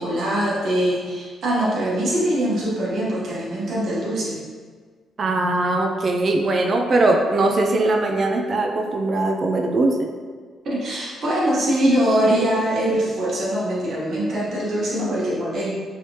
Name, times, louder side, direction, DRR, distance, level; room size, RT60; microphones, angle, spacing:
voice 1, 0.0-4.4 10.6-15.8, right 1 dB, 60° right, -6 dB, 1.1 m, -22 dB
voice 2, 5.2-10.1, right 2 dB, 45° right, 2 dB, 0.4 m, -20 dB
3.2 x 3.0 x 2.9 m, 1.5 s
cardioid pair, 90°, 0 cm